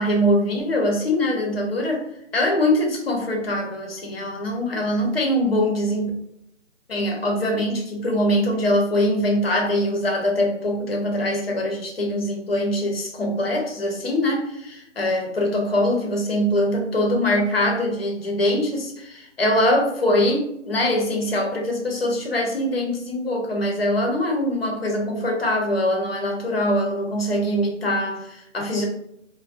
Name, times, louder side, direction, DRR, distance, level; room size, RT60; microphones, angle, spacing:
voice 1, 0.0-2.0 2.3-6.1 6.9-28.9, left 1 dB, 50° left, 0 dB, 0.7 m, -23 dB
2.3 x 2.2 x 2.4 m, 0.76 s
hypercardioid pair, 175°, 38 cm